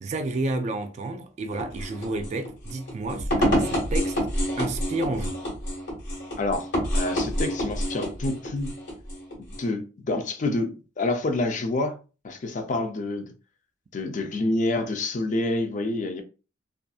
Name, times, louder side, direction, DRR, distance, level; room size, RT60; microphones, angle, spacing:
voice 1, 0.0-4.2 4.6-5.4, right 2 dB, 40° right, 0.3 m, -30 dB
sound 1, 1.5-9.7, equal, 70° left, 1.3 m, -28 dB
voice 2, 6.4-6.7 6.9-8.7 9.6-12.0 12.2-13.3 13.9-16.2, left 2 dB, 45° left, 0.5 m, -27 dB
2.6 x 2.4 x 2.3 m
head